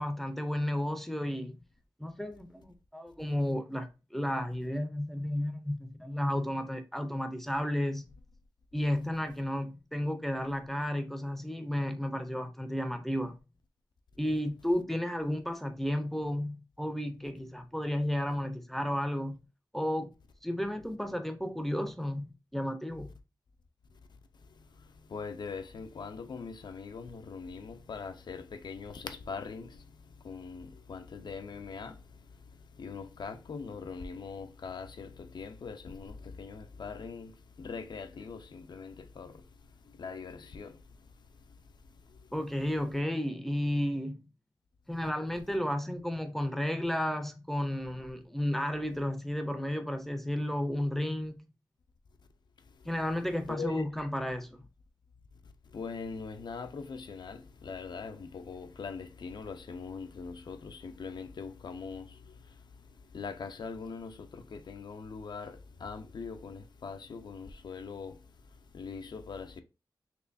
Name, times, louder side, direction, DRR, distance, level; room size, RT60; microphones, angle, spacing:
voice 1, 0.0-1.6 2.0-8.1 8.7-13.4 14.2-19.4 19.7-20.1 20.4-22.3 22.5-23.1 42.3-44.2 44.9-51.3 52.9-54.6, left 1 dB, 5° left, 0.5 m, -32 dB
voice 2, 25.1-29.8 30.2-32.0 32.8-37.3 37.6-39.4 40.0-40.8 53.5-53.8 55.7-62.1 63.1-68.2 68.7-69.6, left 5 dB, 75° left, 0.5 m, -41 dB
4.4 x 3.1 x 2.6 m
wide cardioid pair, 115°, 8 cm